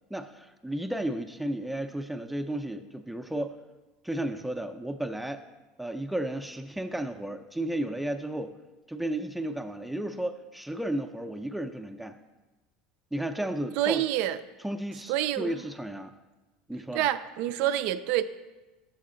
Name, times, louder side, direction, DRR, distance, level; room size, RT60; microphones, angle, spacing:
voice 1, 0.1-3.6 4.0-5.4 5.8-8.5 8.9-12.2 13.1-14.0 14.6-16.1 16.7-17.1, right 1 dB, 5° right, 7 dB, 0.4 m, -33 dB
voice 2, 13.8-14.4 15.1-15.6 16.9-18.2, right 13 dB, 65° right, 11 dB, 0.3 m, -27 dB
6.6 x 6.4 x 3.8 m, 1.1 s
hypercardioid pair, 85°, 3 cm